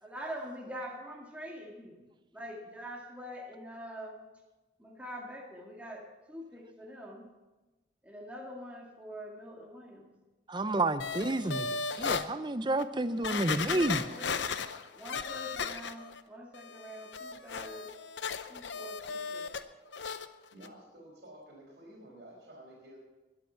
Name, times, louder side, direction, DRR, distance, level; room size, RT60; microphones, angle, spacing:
voice 1, 0.0-2.1 2.3-4.2 4.8-7.3 8.0-10.1 13.2-14.4 14.9-17.9 18.5-19.5, equal, 10° right, -2 dB, 2.1 m, -45 dB
voice 2, 10.5-14.0, right 2 dB, 25° right, 12 dB, 0.6 m, -30 dB
sound 1, 11.0-12.3 12.8-12.9 13.2-16.2 16.5-19.6 19.9-20.3 20.6-20.7, left 5 dB, 80° left, 0.7 m, -36 dB
voice 3, 20.5-23.0, right 1 dB, 60° right, -6 dB, 4.2 m, -51 dB
22.0 x 8.6 x 5.8 m, 1.1 s
head